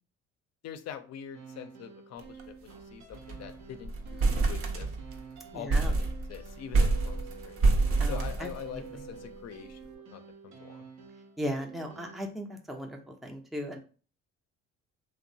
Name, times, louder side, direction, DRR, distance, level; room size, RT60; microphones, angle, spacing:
voice 1, 0.6-4.9 5.5-7.6 8.0-10.8, left 9 dB, 55° left, 9 dB, 0.5 m, -44 dB
sound 1, 1.3-12.3, right 6 dB, 85° right, 0.6 m, -49 dB
sound 2, 2.2-2.4 2.7-2.8 3.1-3.5 3.8-5.2 5.7-9.0, right 3 dB, 45° right, 0.6 m, -27 dB
voice 2, 5.5-5.9 8.0-9.0 11.4-13.8, equal, ahead, 3 dB, 0.5 m, -37 dB
2.8 x 2.0 x 2.6 m, 0.37 s
supercardioid pair, 70°, 32 cm